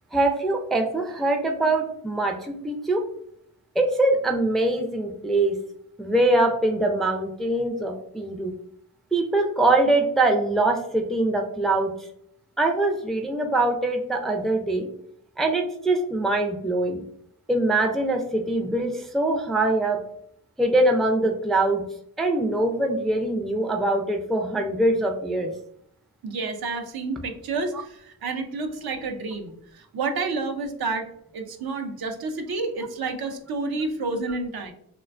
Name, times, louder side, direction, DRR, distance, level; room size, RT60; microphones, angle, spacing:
voice 1, 0.1-3.0 3.8-5.6 6.0-8.5 9.1-11.9 12.6-14.9 15.4-17.0 17.5-20.0 20.6-21.8 22.2-25.5, right 2 dB, ahead, 2 dB, 0.3 m, -23 dB
voice 2, 26.2-31.1 31.3-34.7, right 3 dB, 70° right, 5 dB, 0.5 m, -30 dB
2.5 x 2.2 x 2.4 m, 0.72 s
cardioid pair, 55°, 38 cm